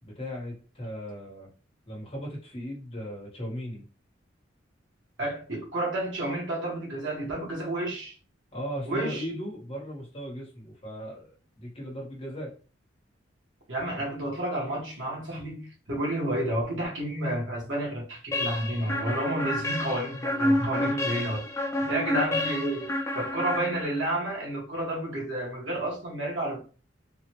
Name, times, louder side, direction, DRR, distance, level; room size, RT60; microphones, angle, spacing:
voice 1, 0.0-1.5 1.9-3.9 8.5-12.6 20.6-20.9 21.8-22.0, equal, 30° left, 1.4 m, -37 dB
voice 2, 5.2-8.1 8.8-9.2 13.7-21.4 21.9-26.6, right 1 dB, 75° right, 1.6 m, -30 dB
sound 1, 18.3-24.2, left 1 dB, 15° left, 0.4 m, -29 dB
3.8 x 2.5 x 3.0 m
head